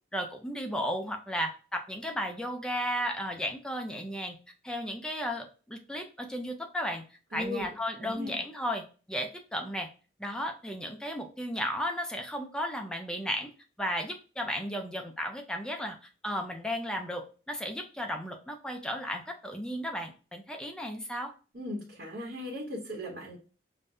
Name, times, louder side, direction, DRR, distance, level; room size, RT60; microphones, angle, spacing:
voice 1, 0.1-4.4 4.6-7.0 7.3-9.9 10.2-13.5 13.8-21.3, equal, 5° left, 3 dB, 0.5 m, -34 dB
voice 2, 7.3-7.7 8.0-8.4 21.5-23.4, left 1 dB, 65° right, -3 dB, 1.1 m, -37 dB
5.1 x 2.2 x 2.6 m, 0.35 s
head